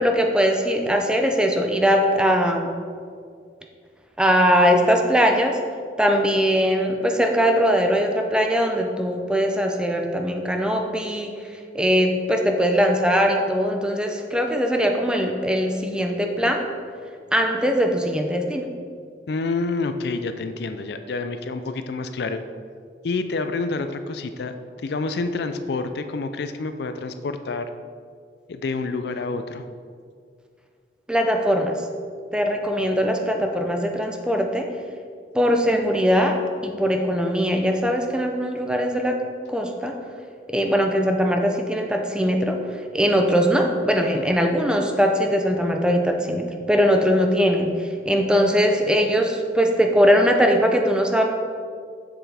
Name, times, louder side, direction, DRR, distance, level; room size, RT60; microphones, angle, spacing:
voice 1, 0.0-2.7 4.2-5.6 6.0-11.4 11.7-16.7 17.3-18.7 31.1-31.8 32.3-34.7 35.3-39.2 39.5-40.0 40.5-42.6 42.9-51.2, equal, 5° right, 3 dB, 0.5 m, -21 dB
voice 2, 19.3-22.4 23.0-27.7 28.5-29.6, left 3 dB, 60° left, 9 dB, 0.4 m, -28 dB
7.3 x 7.0 x 3.4 m, 2.1 s
head